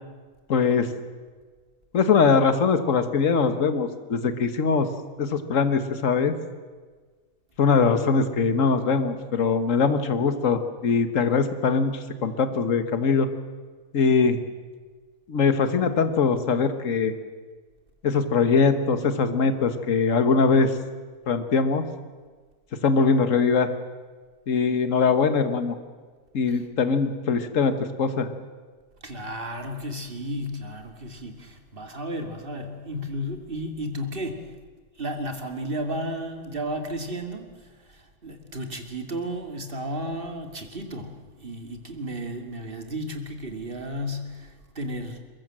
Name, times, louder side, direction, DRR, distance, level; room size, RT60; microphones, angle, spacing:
voice 1, 0.5-0.9 1.9-4.9 5.2-6.3 7.6-13.3 13.9-14.4 15.3-17.1 18.0-20.8 21.3-21.8 22.8-23.7 24.5-25.8 26.3-28.3, left 5 dB, 60° left, 9 dB, 1.8 m, -22 dB
voice 2, 29.0-34.6 34.9-45.2, equal, 35° right, 5 dB, 2.6 m, -33 dB
23.0 x 21.5 x 7.6 m, 1.4 s
omnidirectional pair, 1.6 m